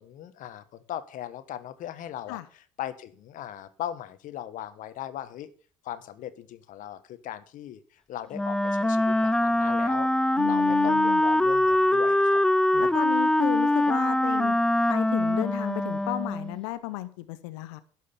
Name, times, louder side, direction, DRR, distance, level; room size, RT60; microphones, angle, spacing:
voice 1, 0.0-5.5 5.8-7.8 8.1-10.1 10.4-12.4 12.7-13.0, left 11 dB, 65° left, 13 dB, 1.3 m, -38 dB
Wind instrument woodwind instrument, 8.3-16.6, left 1 dB, 5° left, 0.4 m, -23 dB
voice 2, 10.4-11.2 12.8-14.6 14.9-17.8, left 17 dB, 85° left, 13 dB, 0.7 m, -34 dB
11.5 x 6.5 x 7.0 m, 0.42 s
hypercardioid pair, 70°, 15 cm